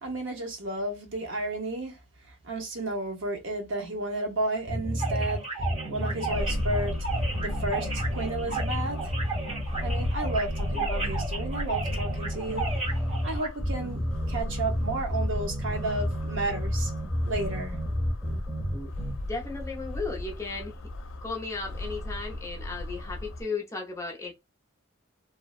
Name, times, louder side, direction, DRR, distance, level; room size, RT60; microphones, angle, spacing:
voice 1, 0.0-5.5 5.9-7.0 7.3-9.1 9.8-12.7 13.2-14.0 14.3-16.9 17.2-17.8, right 2 dB, 70° right, 0.8 m, -32 dB
sound 1, 4.7-19.1, equal, 5° right, 1.0 m, -31 dB
sound 2, 5.0-13.5, right 3 dB, 30° right, 0.9 m, -35 dB
sound 3, 6.3-23.4, left 1 dB, 80° left, 0.4 m, -36 dB
voice 2, 19.2-20.8 21.2-24.3, left 4 dB, 15° left, 0.6 m, -35 dB
2.6 x 2.1 x 2.3 m
head